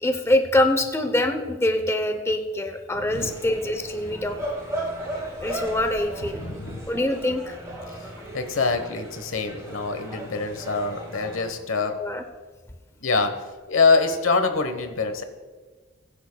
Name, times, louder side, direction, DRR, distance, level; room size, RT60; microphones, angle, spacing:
voice 1, 0.0-4.4 5.4-6.4 6.9-7.5 11.9-12.2, left 1 dB, 15° left, 6 dB, 0.7 m, -24 dB
voice 2, 3.0-3.3 6.2-6.9 8.3-12.0 13.0-13.3 13.7-15.2, left 4 dB, 85° left, 8 dB, 1.1 m, -24 dB
sound 1, 3.1-11.5, right 1 dB, 15° right, 3.6 m, -36 dB
20.5 x 10.0 x 2.3 m, 1.4 s
head